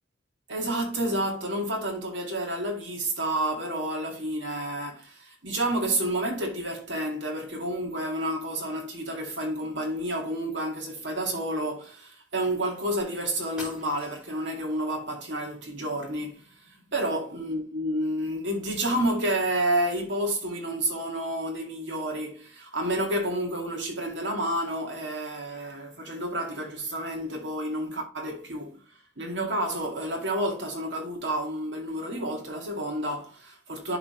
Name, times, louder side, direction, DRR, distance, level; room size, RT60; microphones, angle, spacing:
voice 1, 0.5-28.8 29.2-34.0, right 1 dB, 70° right, 2.2 m, -30 dB
sound 1, 13.0-13.1 13.6-14.5, left 1 dB, 5° right, 2.8 m, -43 dB
11.0 x 4.0 x 3.2 m
head